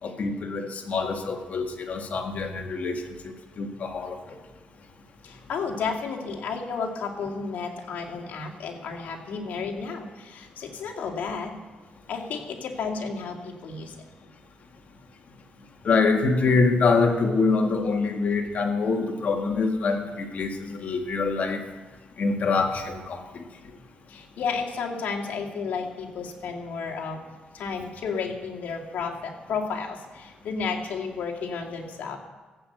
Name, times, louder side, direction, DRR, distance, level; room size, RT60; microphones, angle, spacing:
voice 1, 0.0-4.2 15.8-21.6 22.2-23.4, left 4 dB, 55° left, 4 dB, 2.0 m, -25 dB
voice 2, 5.2-11.6 12.1-14.0 24.1-27.2 27.5-32.2, left 5 dB, 75° left, 0 dB, 2.5 m, -32 dB
15.0 x 8.2 x 8.0 m, 1.3 s
cardioid pair, 85°, 3 cm